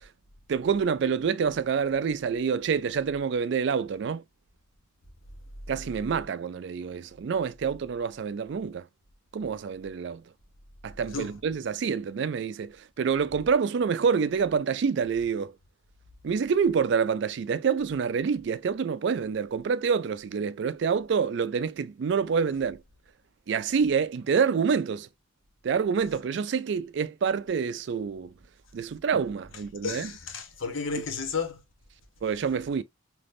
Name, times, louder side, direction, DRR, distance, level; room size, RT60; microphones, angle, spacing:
voice 1, 0.5-4.2 5.7-8.8 9.3-10.2 10.8-15.5 16.2-22.8 23.5-25.1 25.6-28.3 28.7-30.1 32.2-32.8, right 6 dB, 60° right, 0.3 m, -27 dB
voice 2, 29.8-31.6, left 5 dB, 85° left, 0.9 m, -32 dB
3.4 x 2.9 x 2.5 m
head